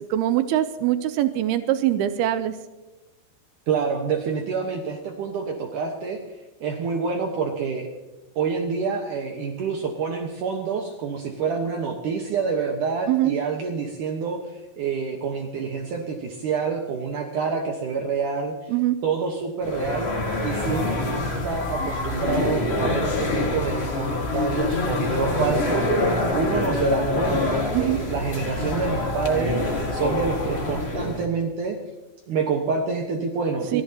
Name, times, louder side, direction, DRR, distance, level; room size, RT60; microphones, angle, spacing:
voice 1, 0.1-2.5 13.1-13.3 18.7-19.0 27.7-28.0 33.7-33.8, right 13 dB, 90° right, 10 dB, 2.7 m, -22 dB
voice 2, 3.7-6.2 6.6-7.9 8.4-18.7 19.0-20.1 20.4-25.9 26.3-29.6 29.9-31.8 32.3-33.8, right 5 dB, 65° right, 2 dB, 2.5 m, -27 dB
sound 1, 19.6-31.2, left 2 dB, 70° left, 0.6 m, -25 dB
27.0 x 14.5 x 2.9 m, 1.1 s
omnidirectional pair, 4.5 m